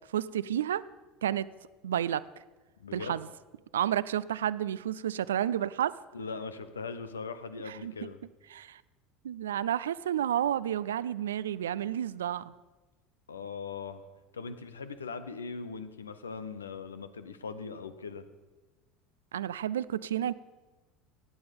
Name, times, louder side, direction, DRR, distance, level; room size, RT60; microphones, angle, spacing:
voice 1, 0.1-0.8 1.2-1.5 1.8-2.2 2.9-3.3 3.7-5.9 7.7-8.1 8.5-8.8 9.2-12.5 19.3-20.3, right 10 dB, 80° right, 18 dB, 0.3 m, -31 dB
voice 2, 2.8-3.2 6.1-8.2 13.3-14.0 14.3-18.3, left 5 dB, 90° left, 11 dB, 0.8 m, -40 dB
16.0 x 9.5 x 5.3 m, 1.2 s
hypercardioid pair, 75°, 0 cm